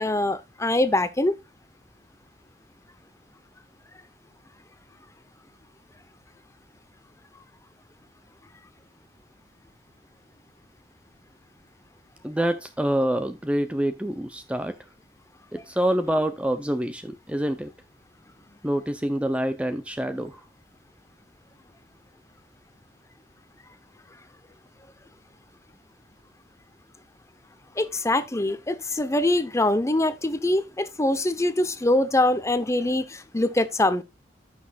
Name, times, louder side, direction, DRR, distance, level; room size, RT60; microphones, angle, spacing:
voice 1, 0.0-1.3 27.8-34.0, left 1 dB, 15° left, 0.8 m, -23 dB
voice 2, 12.2-14.8 15.5-17.7 18.6-20.4, right 1 dB, 5° right, 0.5 m, -26 dB
14.5 x 6.3 x 2.4 m
head